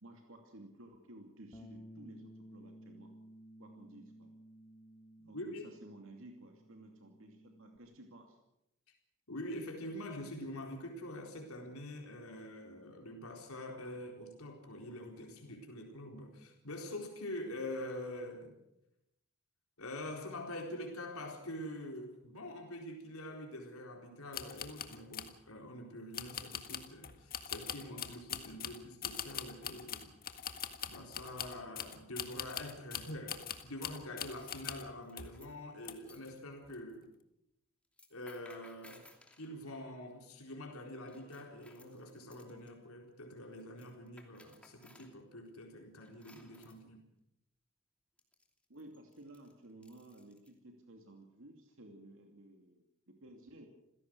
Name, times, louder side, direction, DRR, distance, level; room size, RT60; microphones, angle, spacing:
voice 1, 0.0-3.1 3.6-4.3 5.2-8.4 48.7-53.7, right 1 dB, 65° right, 3 dB, 2.7 m, -55 dB
Bass guitar, 1.5-7.8, equal, 20° left, 1.2 m, -55 dB
voice 2, 9.3-18.6 19.8-30.1 30.9-37.1 38.1-39.0 39.4-47.0, left 1 dB, 80° left, 2 dB, 4.1 m, -45 dB
sound 1, 24.3-25.4 26.1-34.9 35.2-35.4 35.8-36.3 36.6-36.8, left 8 dB, 45° left, 1.7 m, -43 dB
sound 2, 34.3-36.3 37.8-39.5 41.1-42.7 43.6-45.2 46.0-46.8 48.2-50.5, left 1 dB, 5° left, 2.8 m, -62 dB
28.0 x 16.5 x 6.4 m, 0.83 s
head